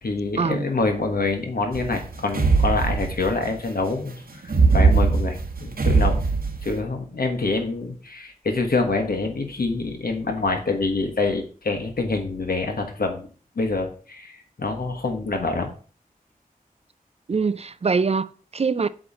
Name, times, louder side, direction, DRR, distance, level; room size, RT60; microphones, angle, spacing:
voice 1, 0.0-6.2 6.6-13.3 13.6-15.7, left 3 dB, 85° left, 1.3 m, -26 dB
sound 1, 1.7-3.5 4.4-6.7, right 4 dB, 75° right, 1.1 m, -20 dB
voice 2, 17.3-18.9, right 5 dB, 45° right, 0.4 m, -23 dB
7.8 x 3.1 x 5.2 m
wide cardioid pair, 80°, 15 cm